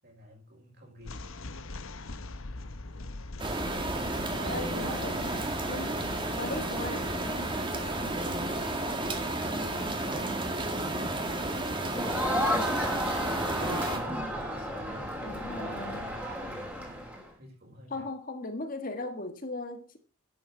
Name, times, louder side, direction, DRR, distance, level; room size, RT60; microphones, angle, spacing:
voice 1, 0.0-1.2 4.4-5.1 5.8-6.0 7.9-8.5 9.3-10.5 10.8-12.4 13.5-16.7 17.4-18.0, equal, 50° right, 5.9 m, -44 dB
sound 1, 1.0-12.3, left 2 dB, 80° left, 1.1 m, -44 dB
sound 2, 3.4-14.0, right 2 dB, 25° right, 2.0 m, -32 dB
voice 2, 4.3-5.1 5.7-5.9 6.3-7.6 15.2-16.1 17.9-20.0, left 2 dB, 40° left, 1.6 m, -38 dB
Crowd, 11.9-17.2, equal, 10° right, 3.2 m, -32 dB
11.5 x 9.1 x 4.5 m
head